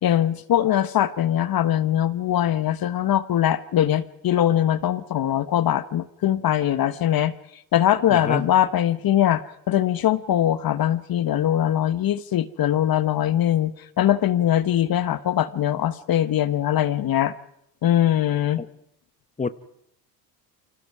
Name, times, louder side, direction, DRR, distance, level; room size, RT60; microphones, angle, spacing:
voice 1, 0.0-7.3 7.7-17.3 17.8-18.6, left 11 dB, 45° left, 14 dB, 1.4 m, -22 dB
voice 2, 8.1-8.5 18.6-18.7 19.4-19.5, left 5 dB, 15° left, 13 dB, 1.1 m, -27 dB
29.5 x 25.5 x 4.9 m, 0.75 s
hypercardioid pair, 70°, 49 cm